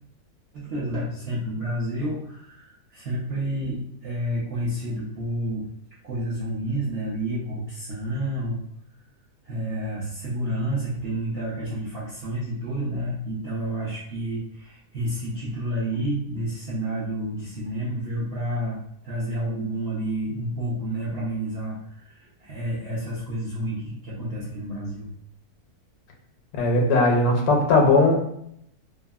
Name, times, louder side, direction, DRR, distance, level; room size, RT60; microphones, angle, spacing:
voice 1, 0.5-5.7 6.0-8.6 9.4-18.8 19.0-25.1, right 1 dB, 65° right, -7 dB, 0.6 m, -30 dB
voice 2, 26.5-28.2, left 2 dB, 75° left, 1 dB, 1.1 m, -19 dB
3.4 x 2.0 x 2.2 m, 0.73 s
omnidirectional pair, 1.7 m